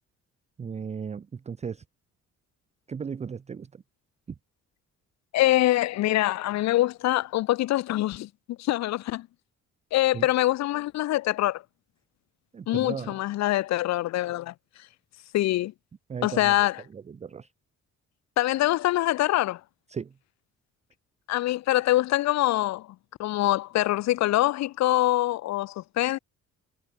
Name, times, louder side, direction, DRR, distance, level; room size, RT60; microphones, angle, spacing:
voice 1, 0.6-1.8 2.9-3.8 10.1-10.3 12.5-13.2 16.1-16.7 16.9-17.5 19.9-20.1, right 6 dB, 25° right, 0.4 m, -36 dB
voice 2, 5.3-9.3 9.9-11.6 12.7-14.5 15.3-15.7 16.2-16.8 18.4-19.6 21.3-22.9 23.2-26.2, left 15 dB, 65° left, 0.5 m, -24 dB
cardioid pair, 90°, 30 cm